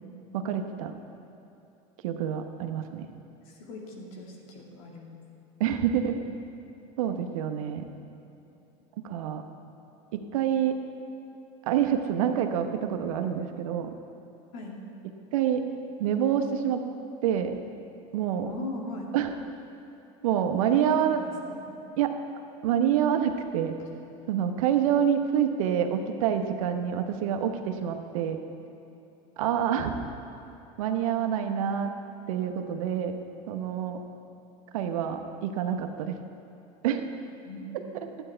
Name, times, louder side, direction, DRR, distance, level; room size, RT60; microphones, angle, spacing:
voice 1, 0.3-0.9 2.0-3.1 5.6-6.2 7.0-7.8 9.0-9.4 10.1-10.8 11.7-13.9 15.3-15.6 16.0-16.8 17.2-17.5 18.1-18.5 19.1-19.3 20.2-21.2 22.0-22.1 22.6-23.7 24.3-28.4 29.4-29.9 30.8-31.9 32.3-33.2 33.5-34.0 34.7-36.1 36.8-37.0, right 9 dB, 85° right, 6 dB, 0.9 m, -27 dB
voice 2, 3.5-5.1 14.5-14.8 18.4-19.1 20.7-21.6 37.5-37.7, left 3 dB, 75° left, -1 dB, 2.1 m, -38 dB
12.0 x 9.0 x 4.5 m, 2.9 s
supercardioid pair, 105°, 17 cm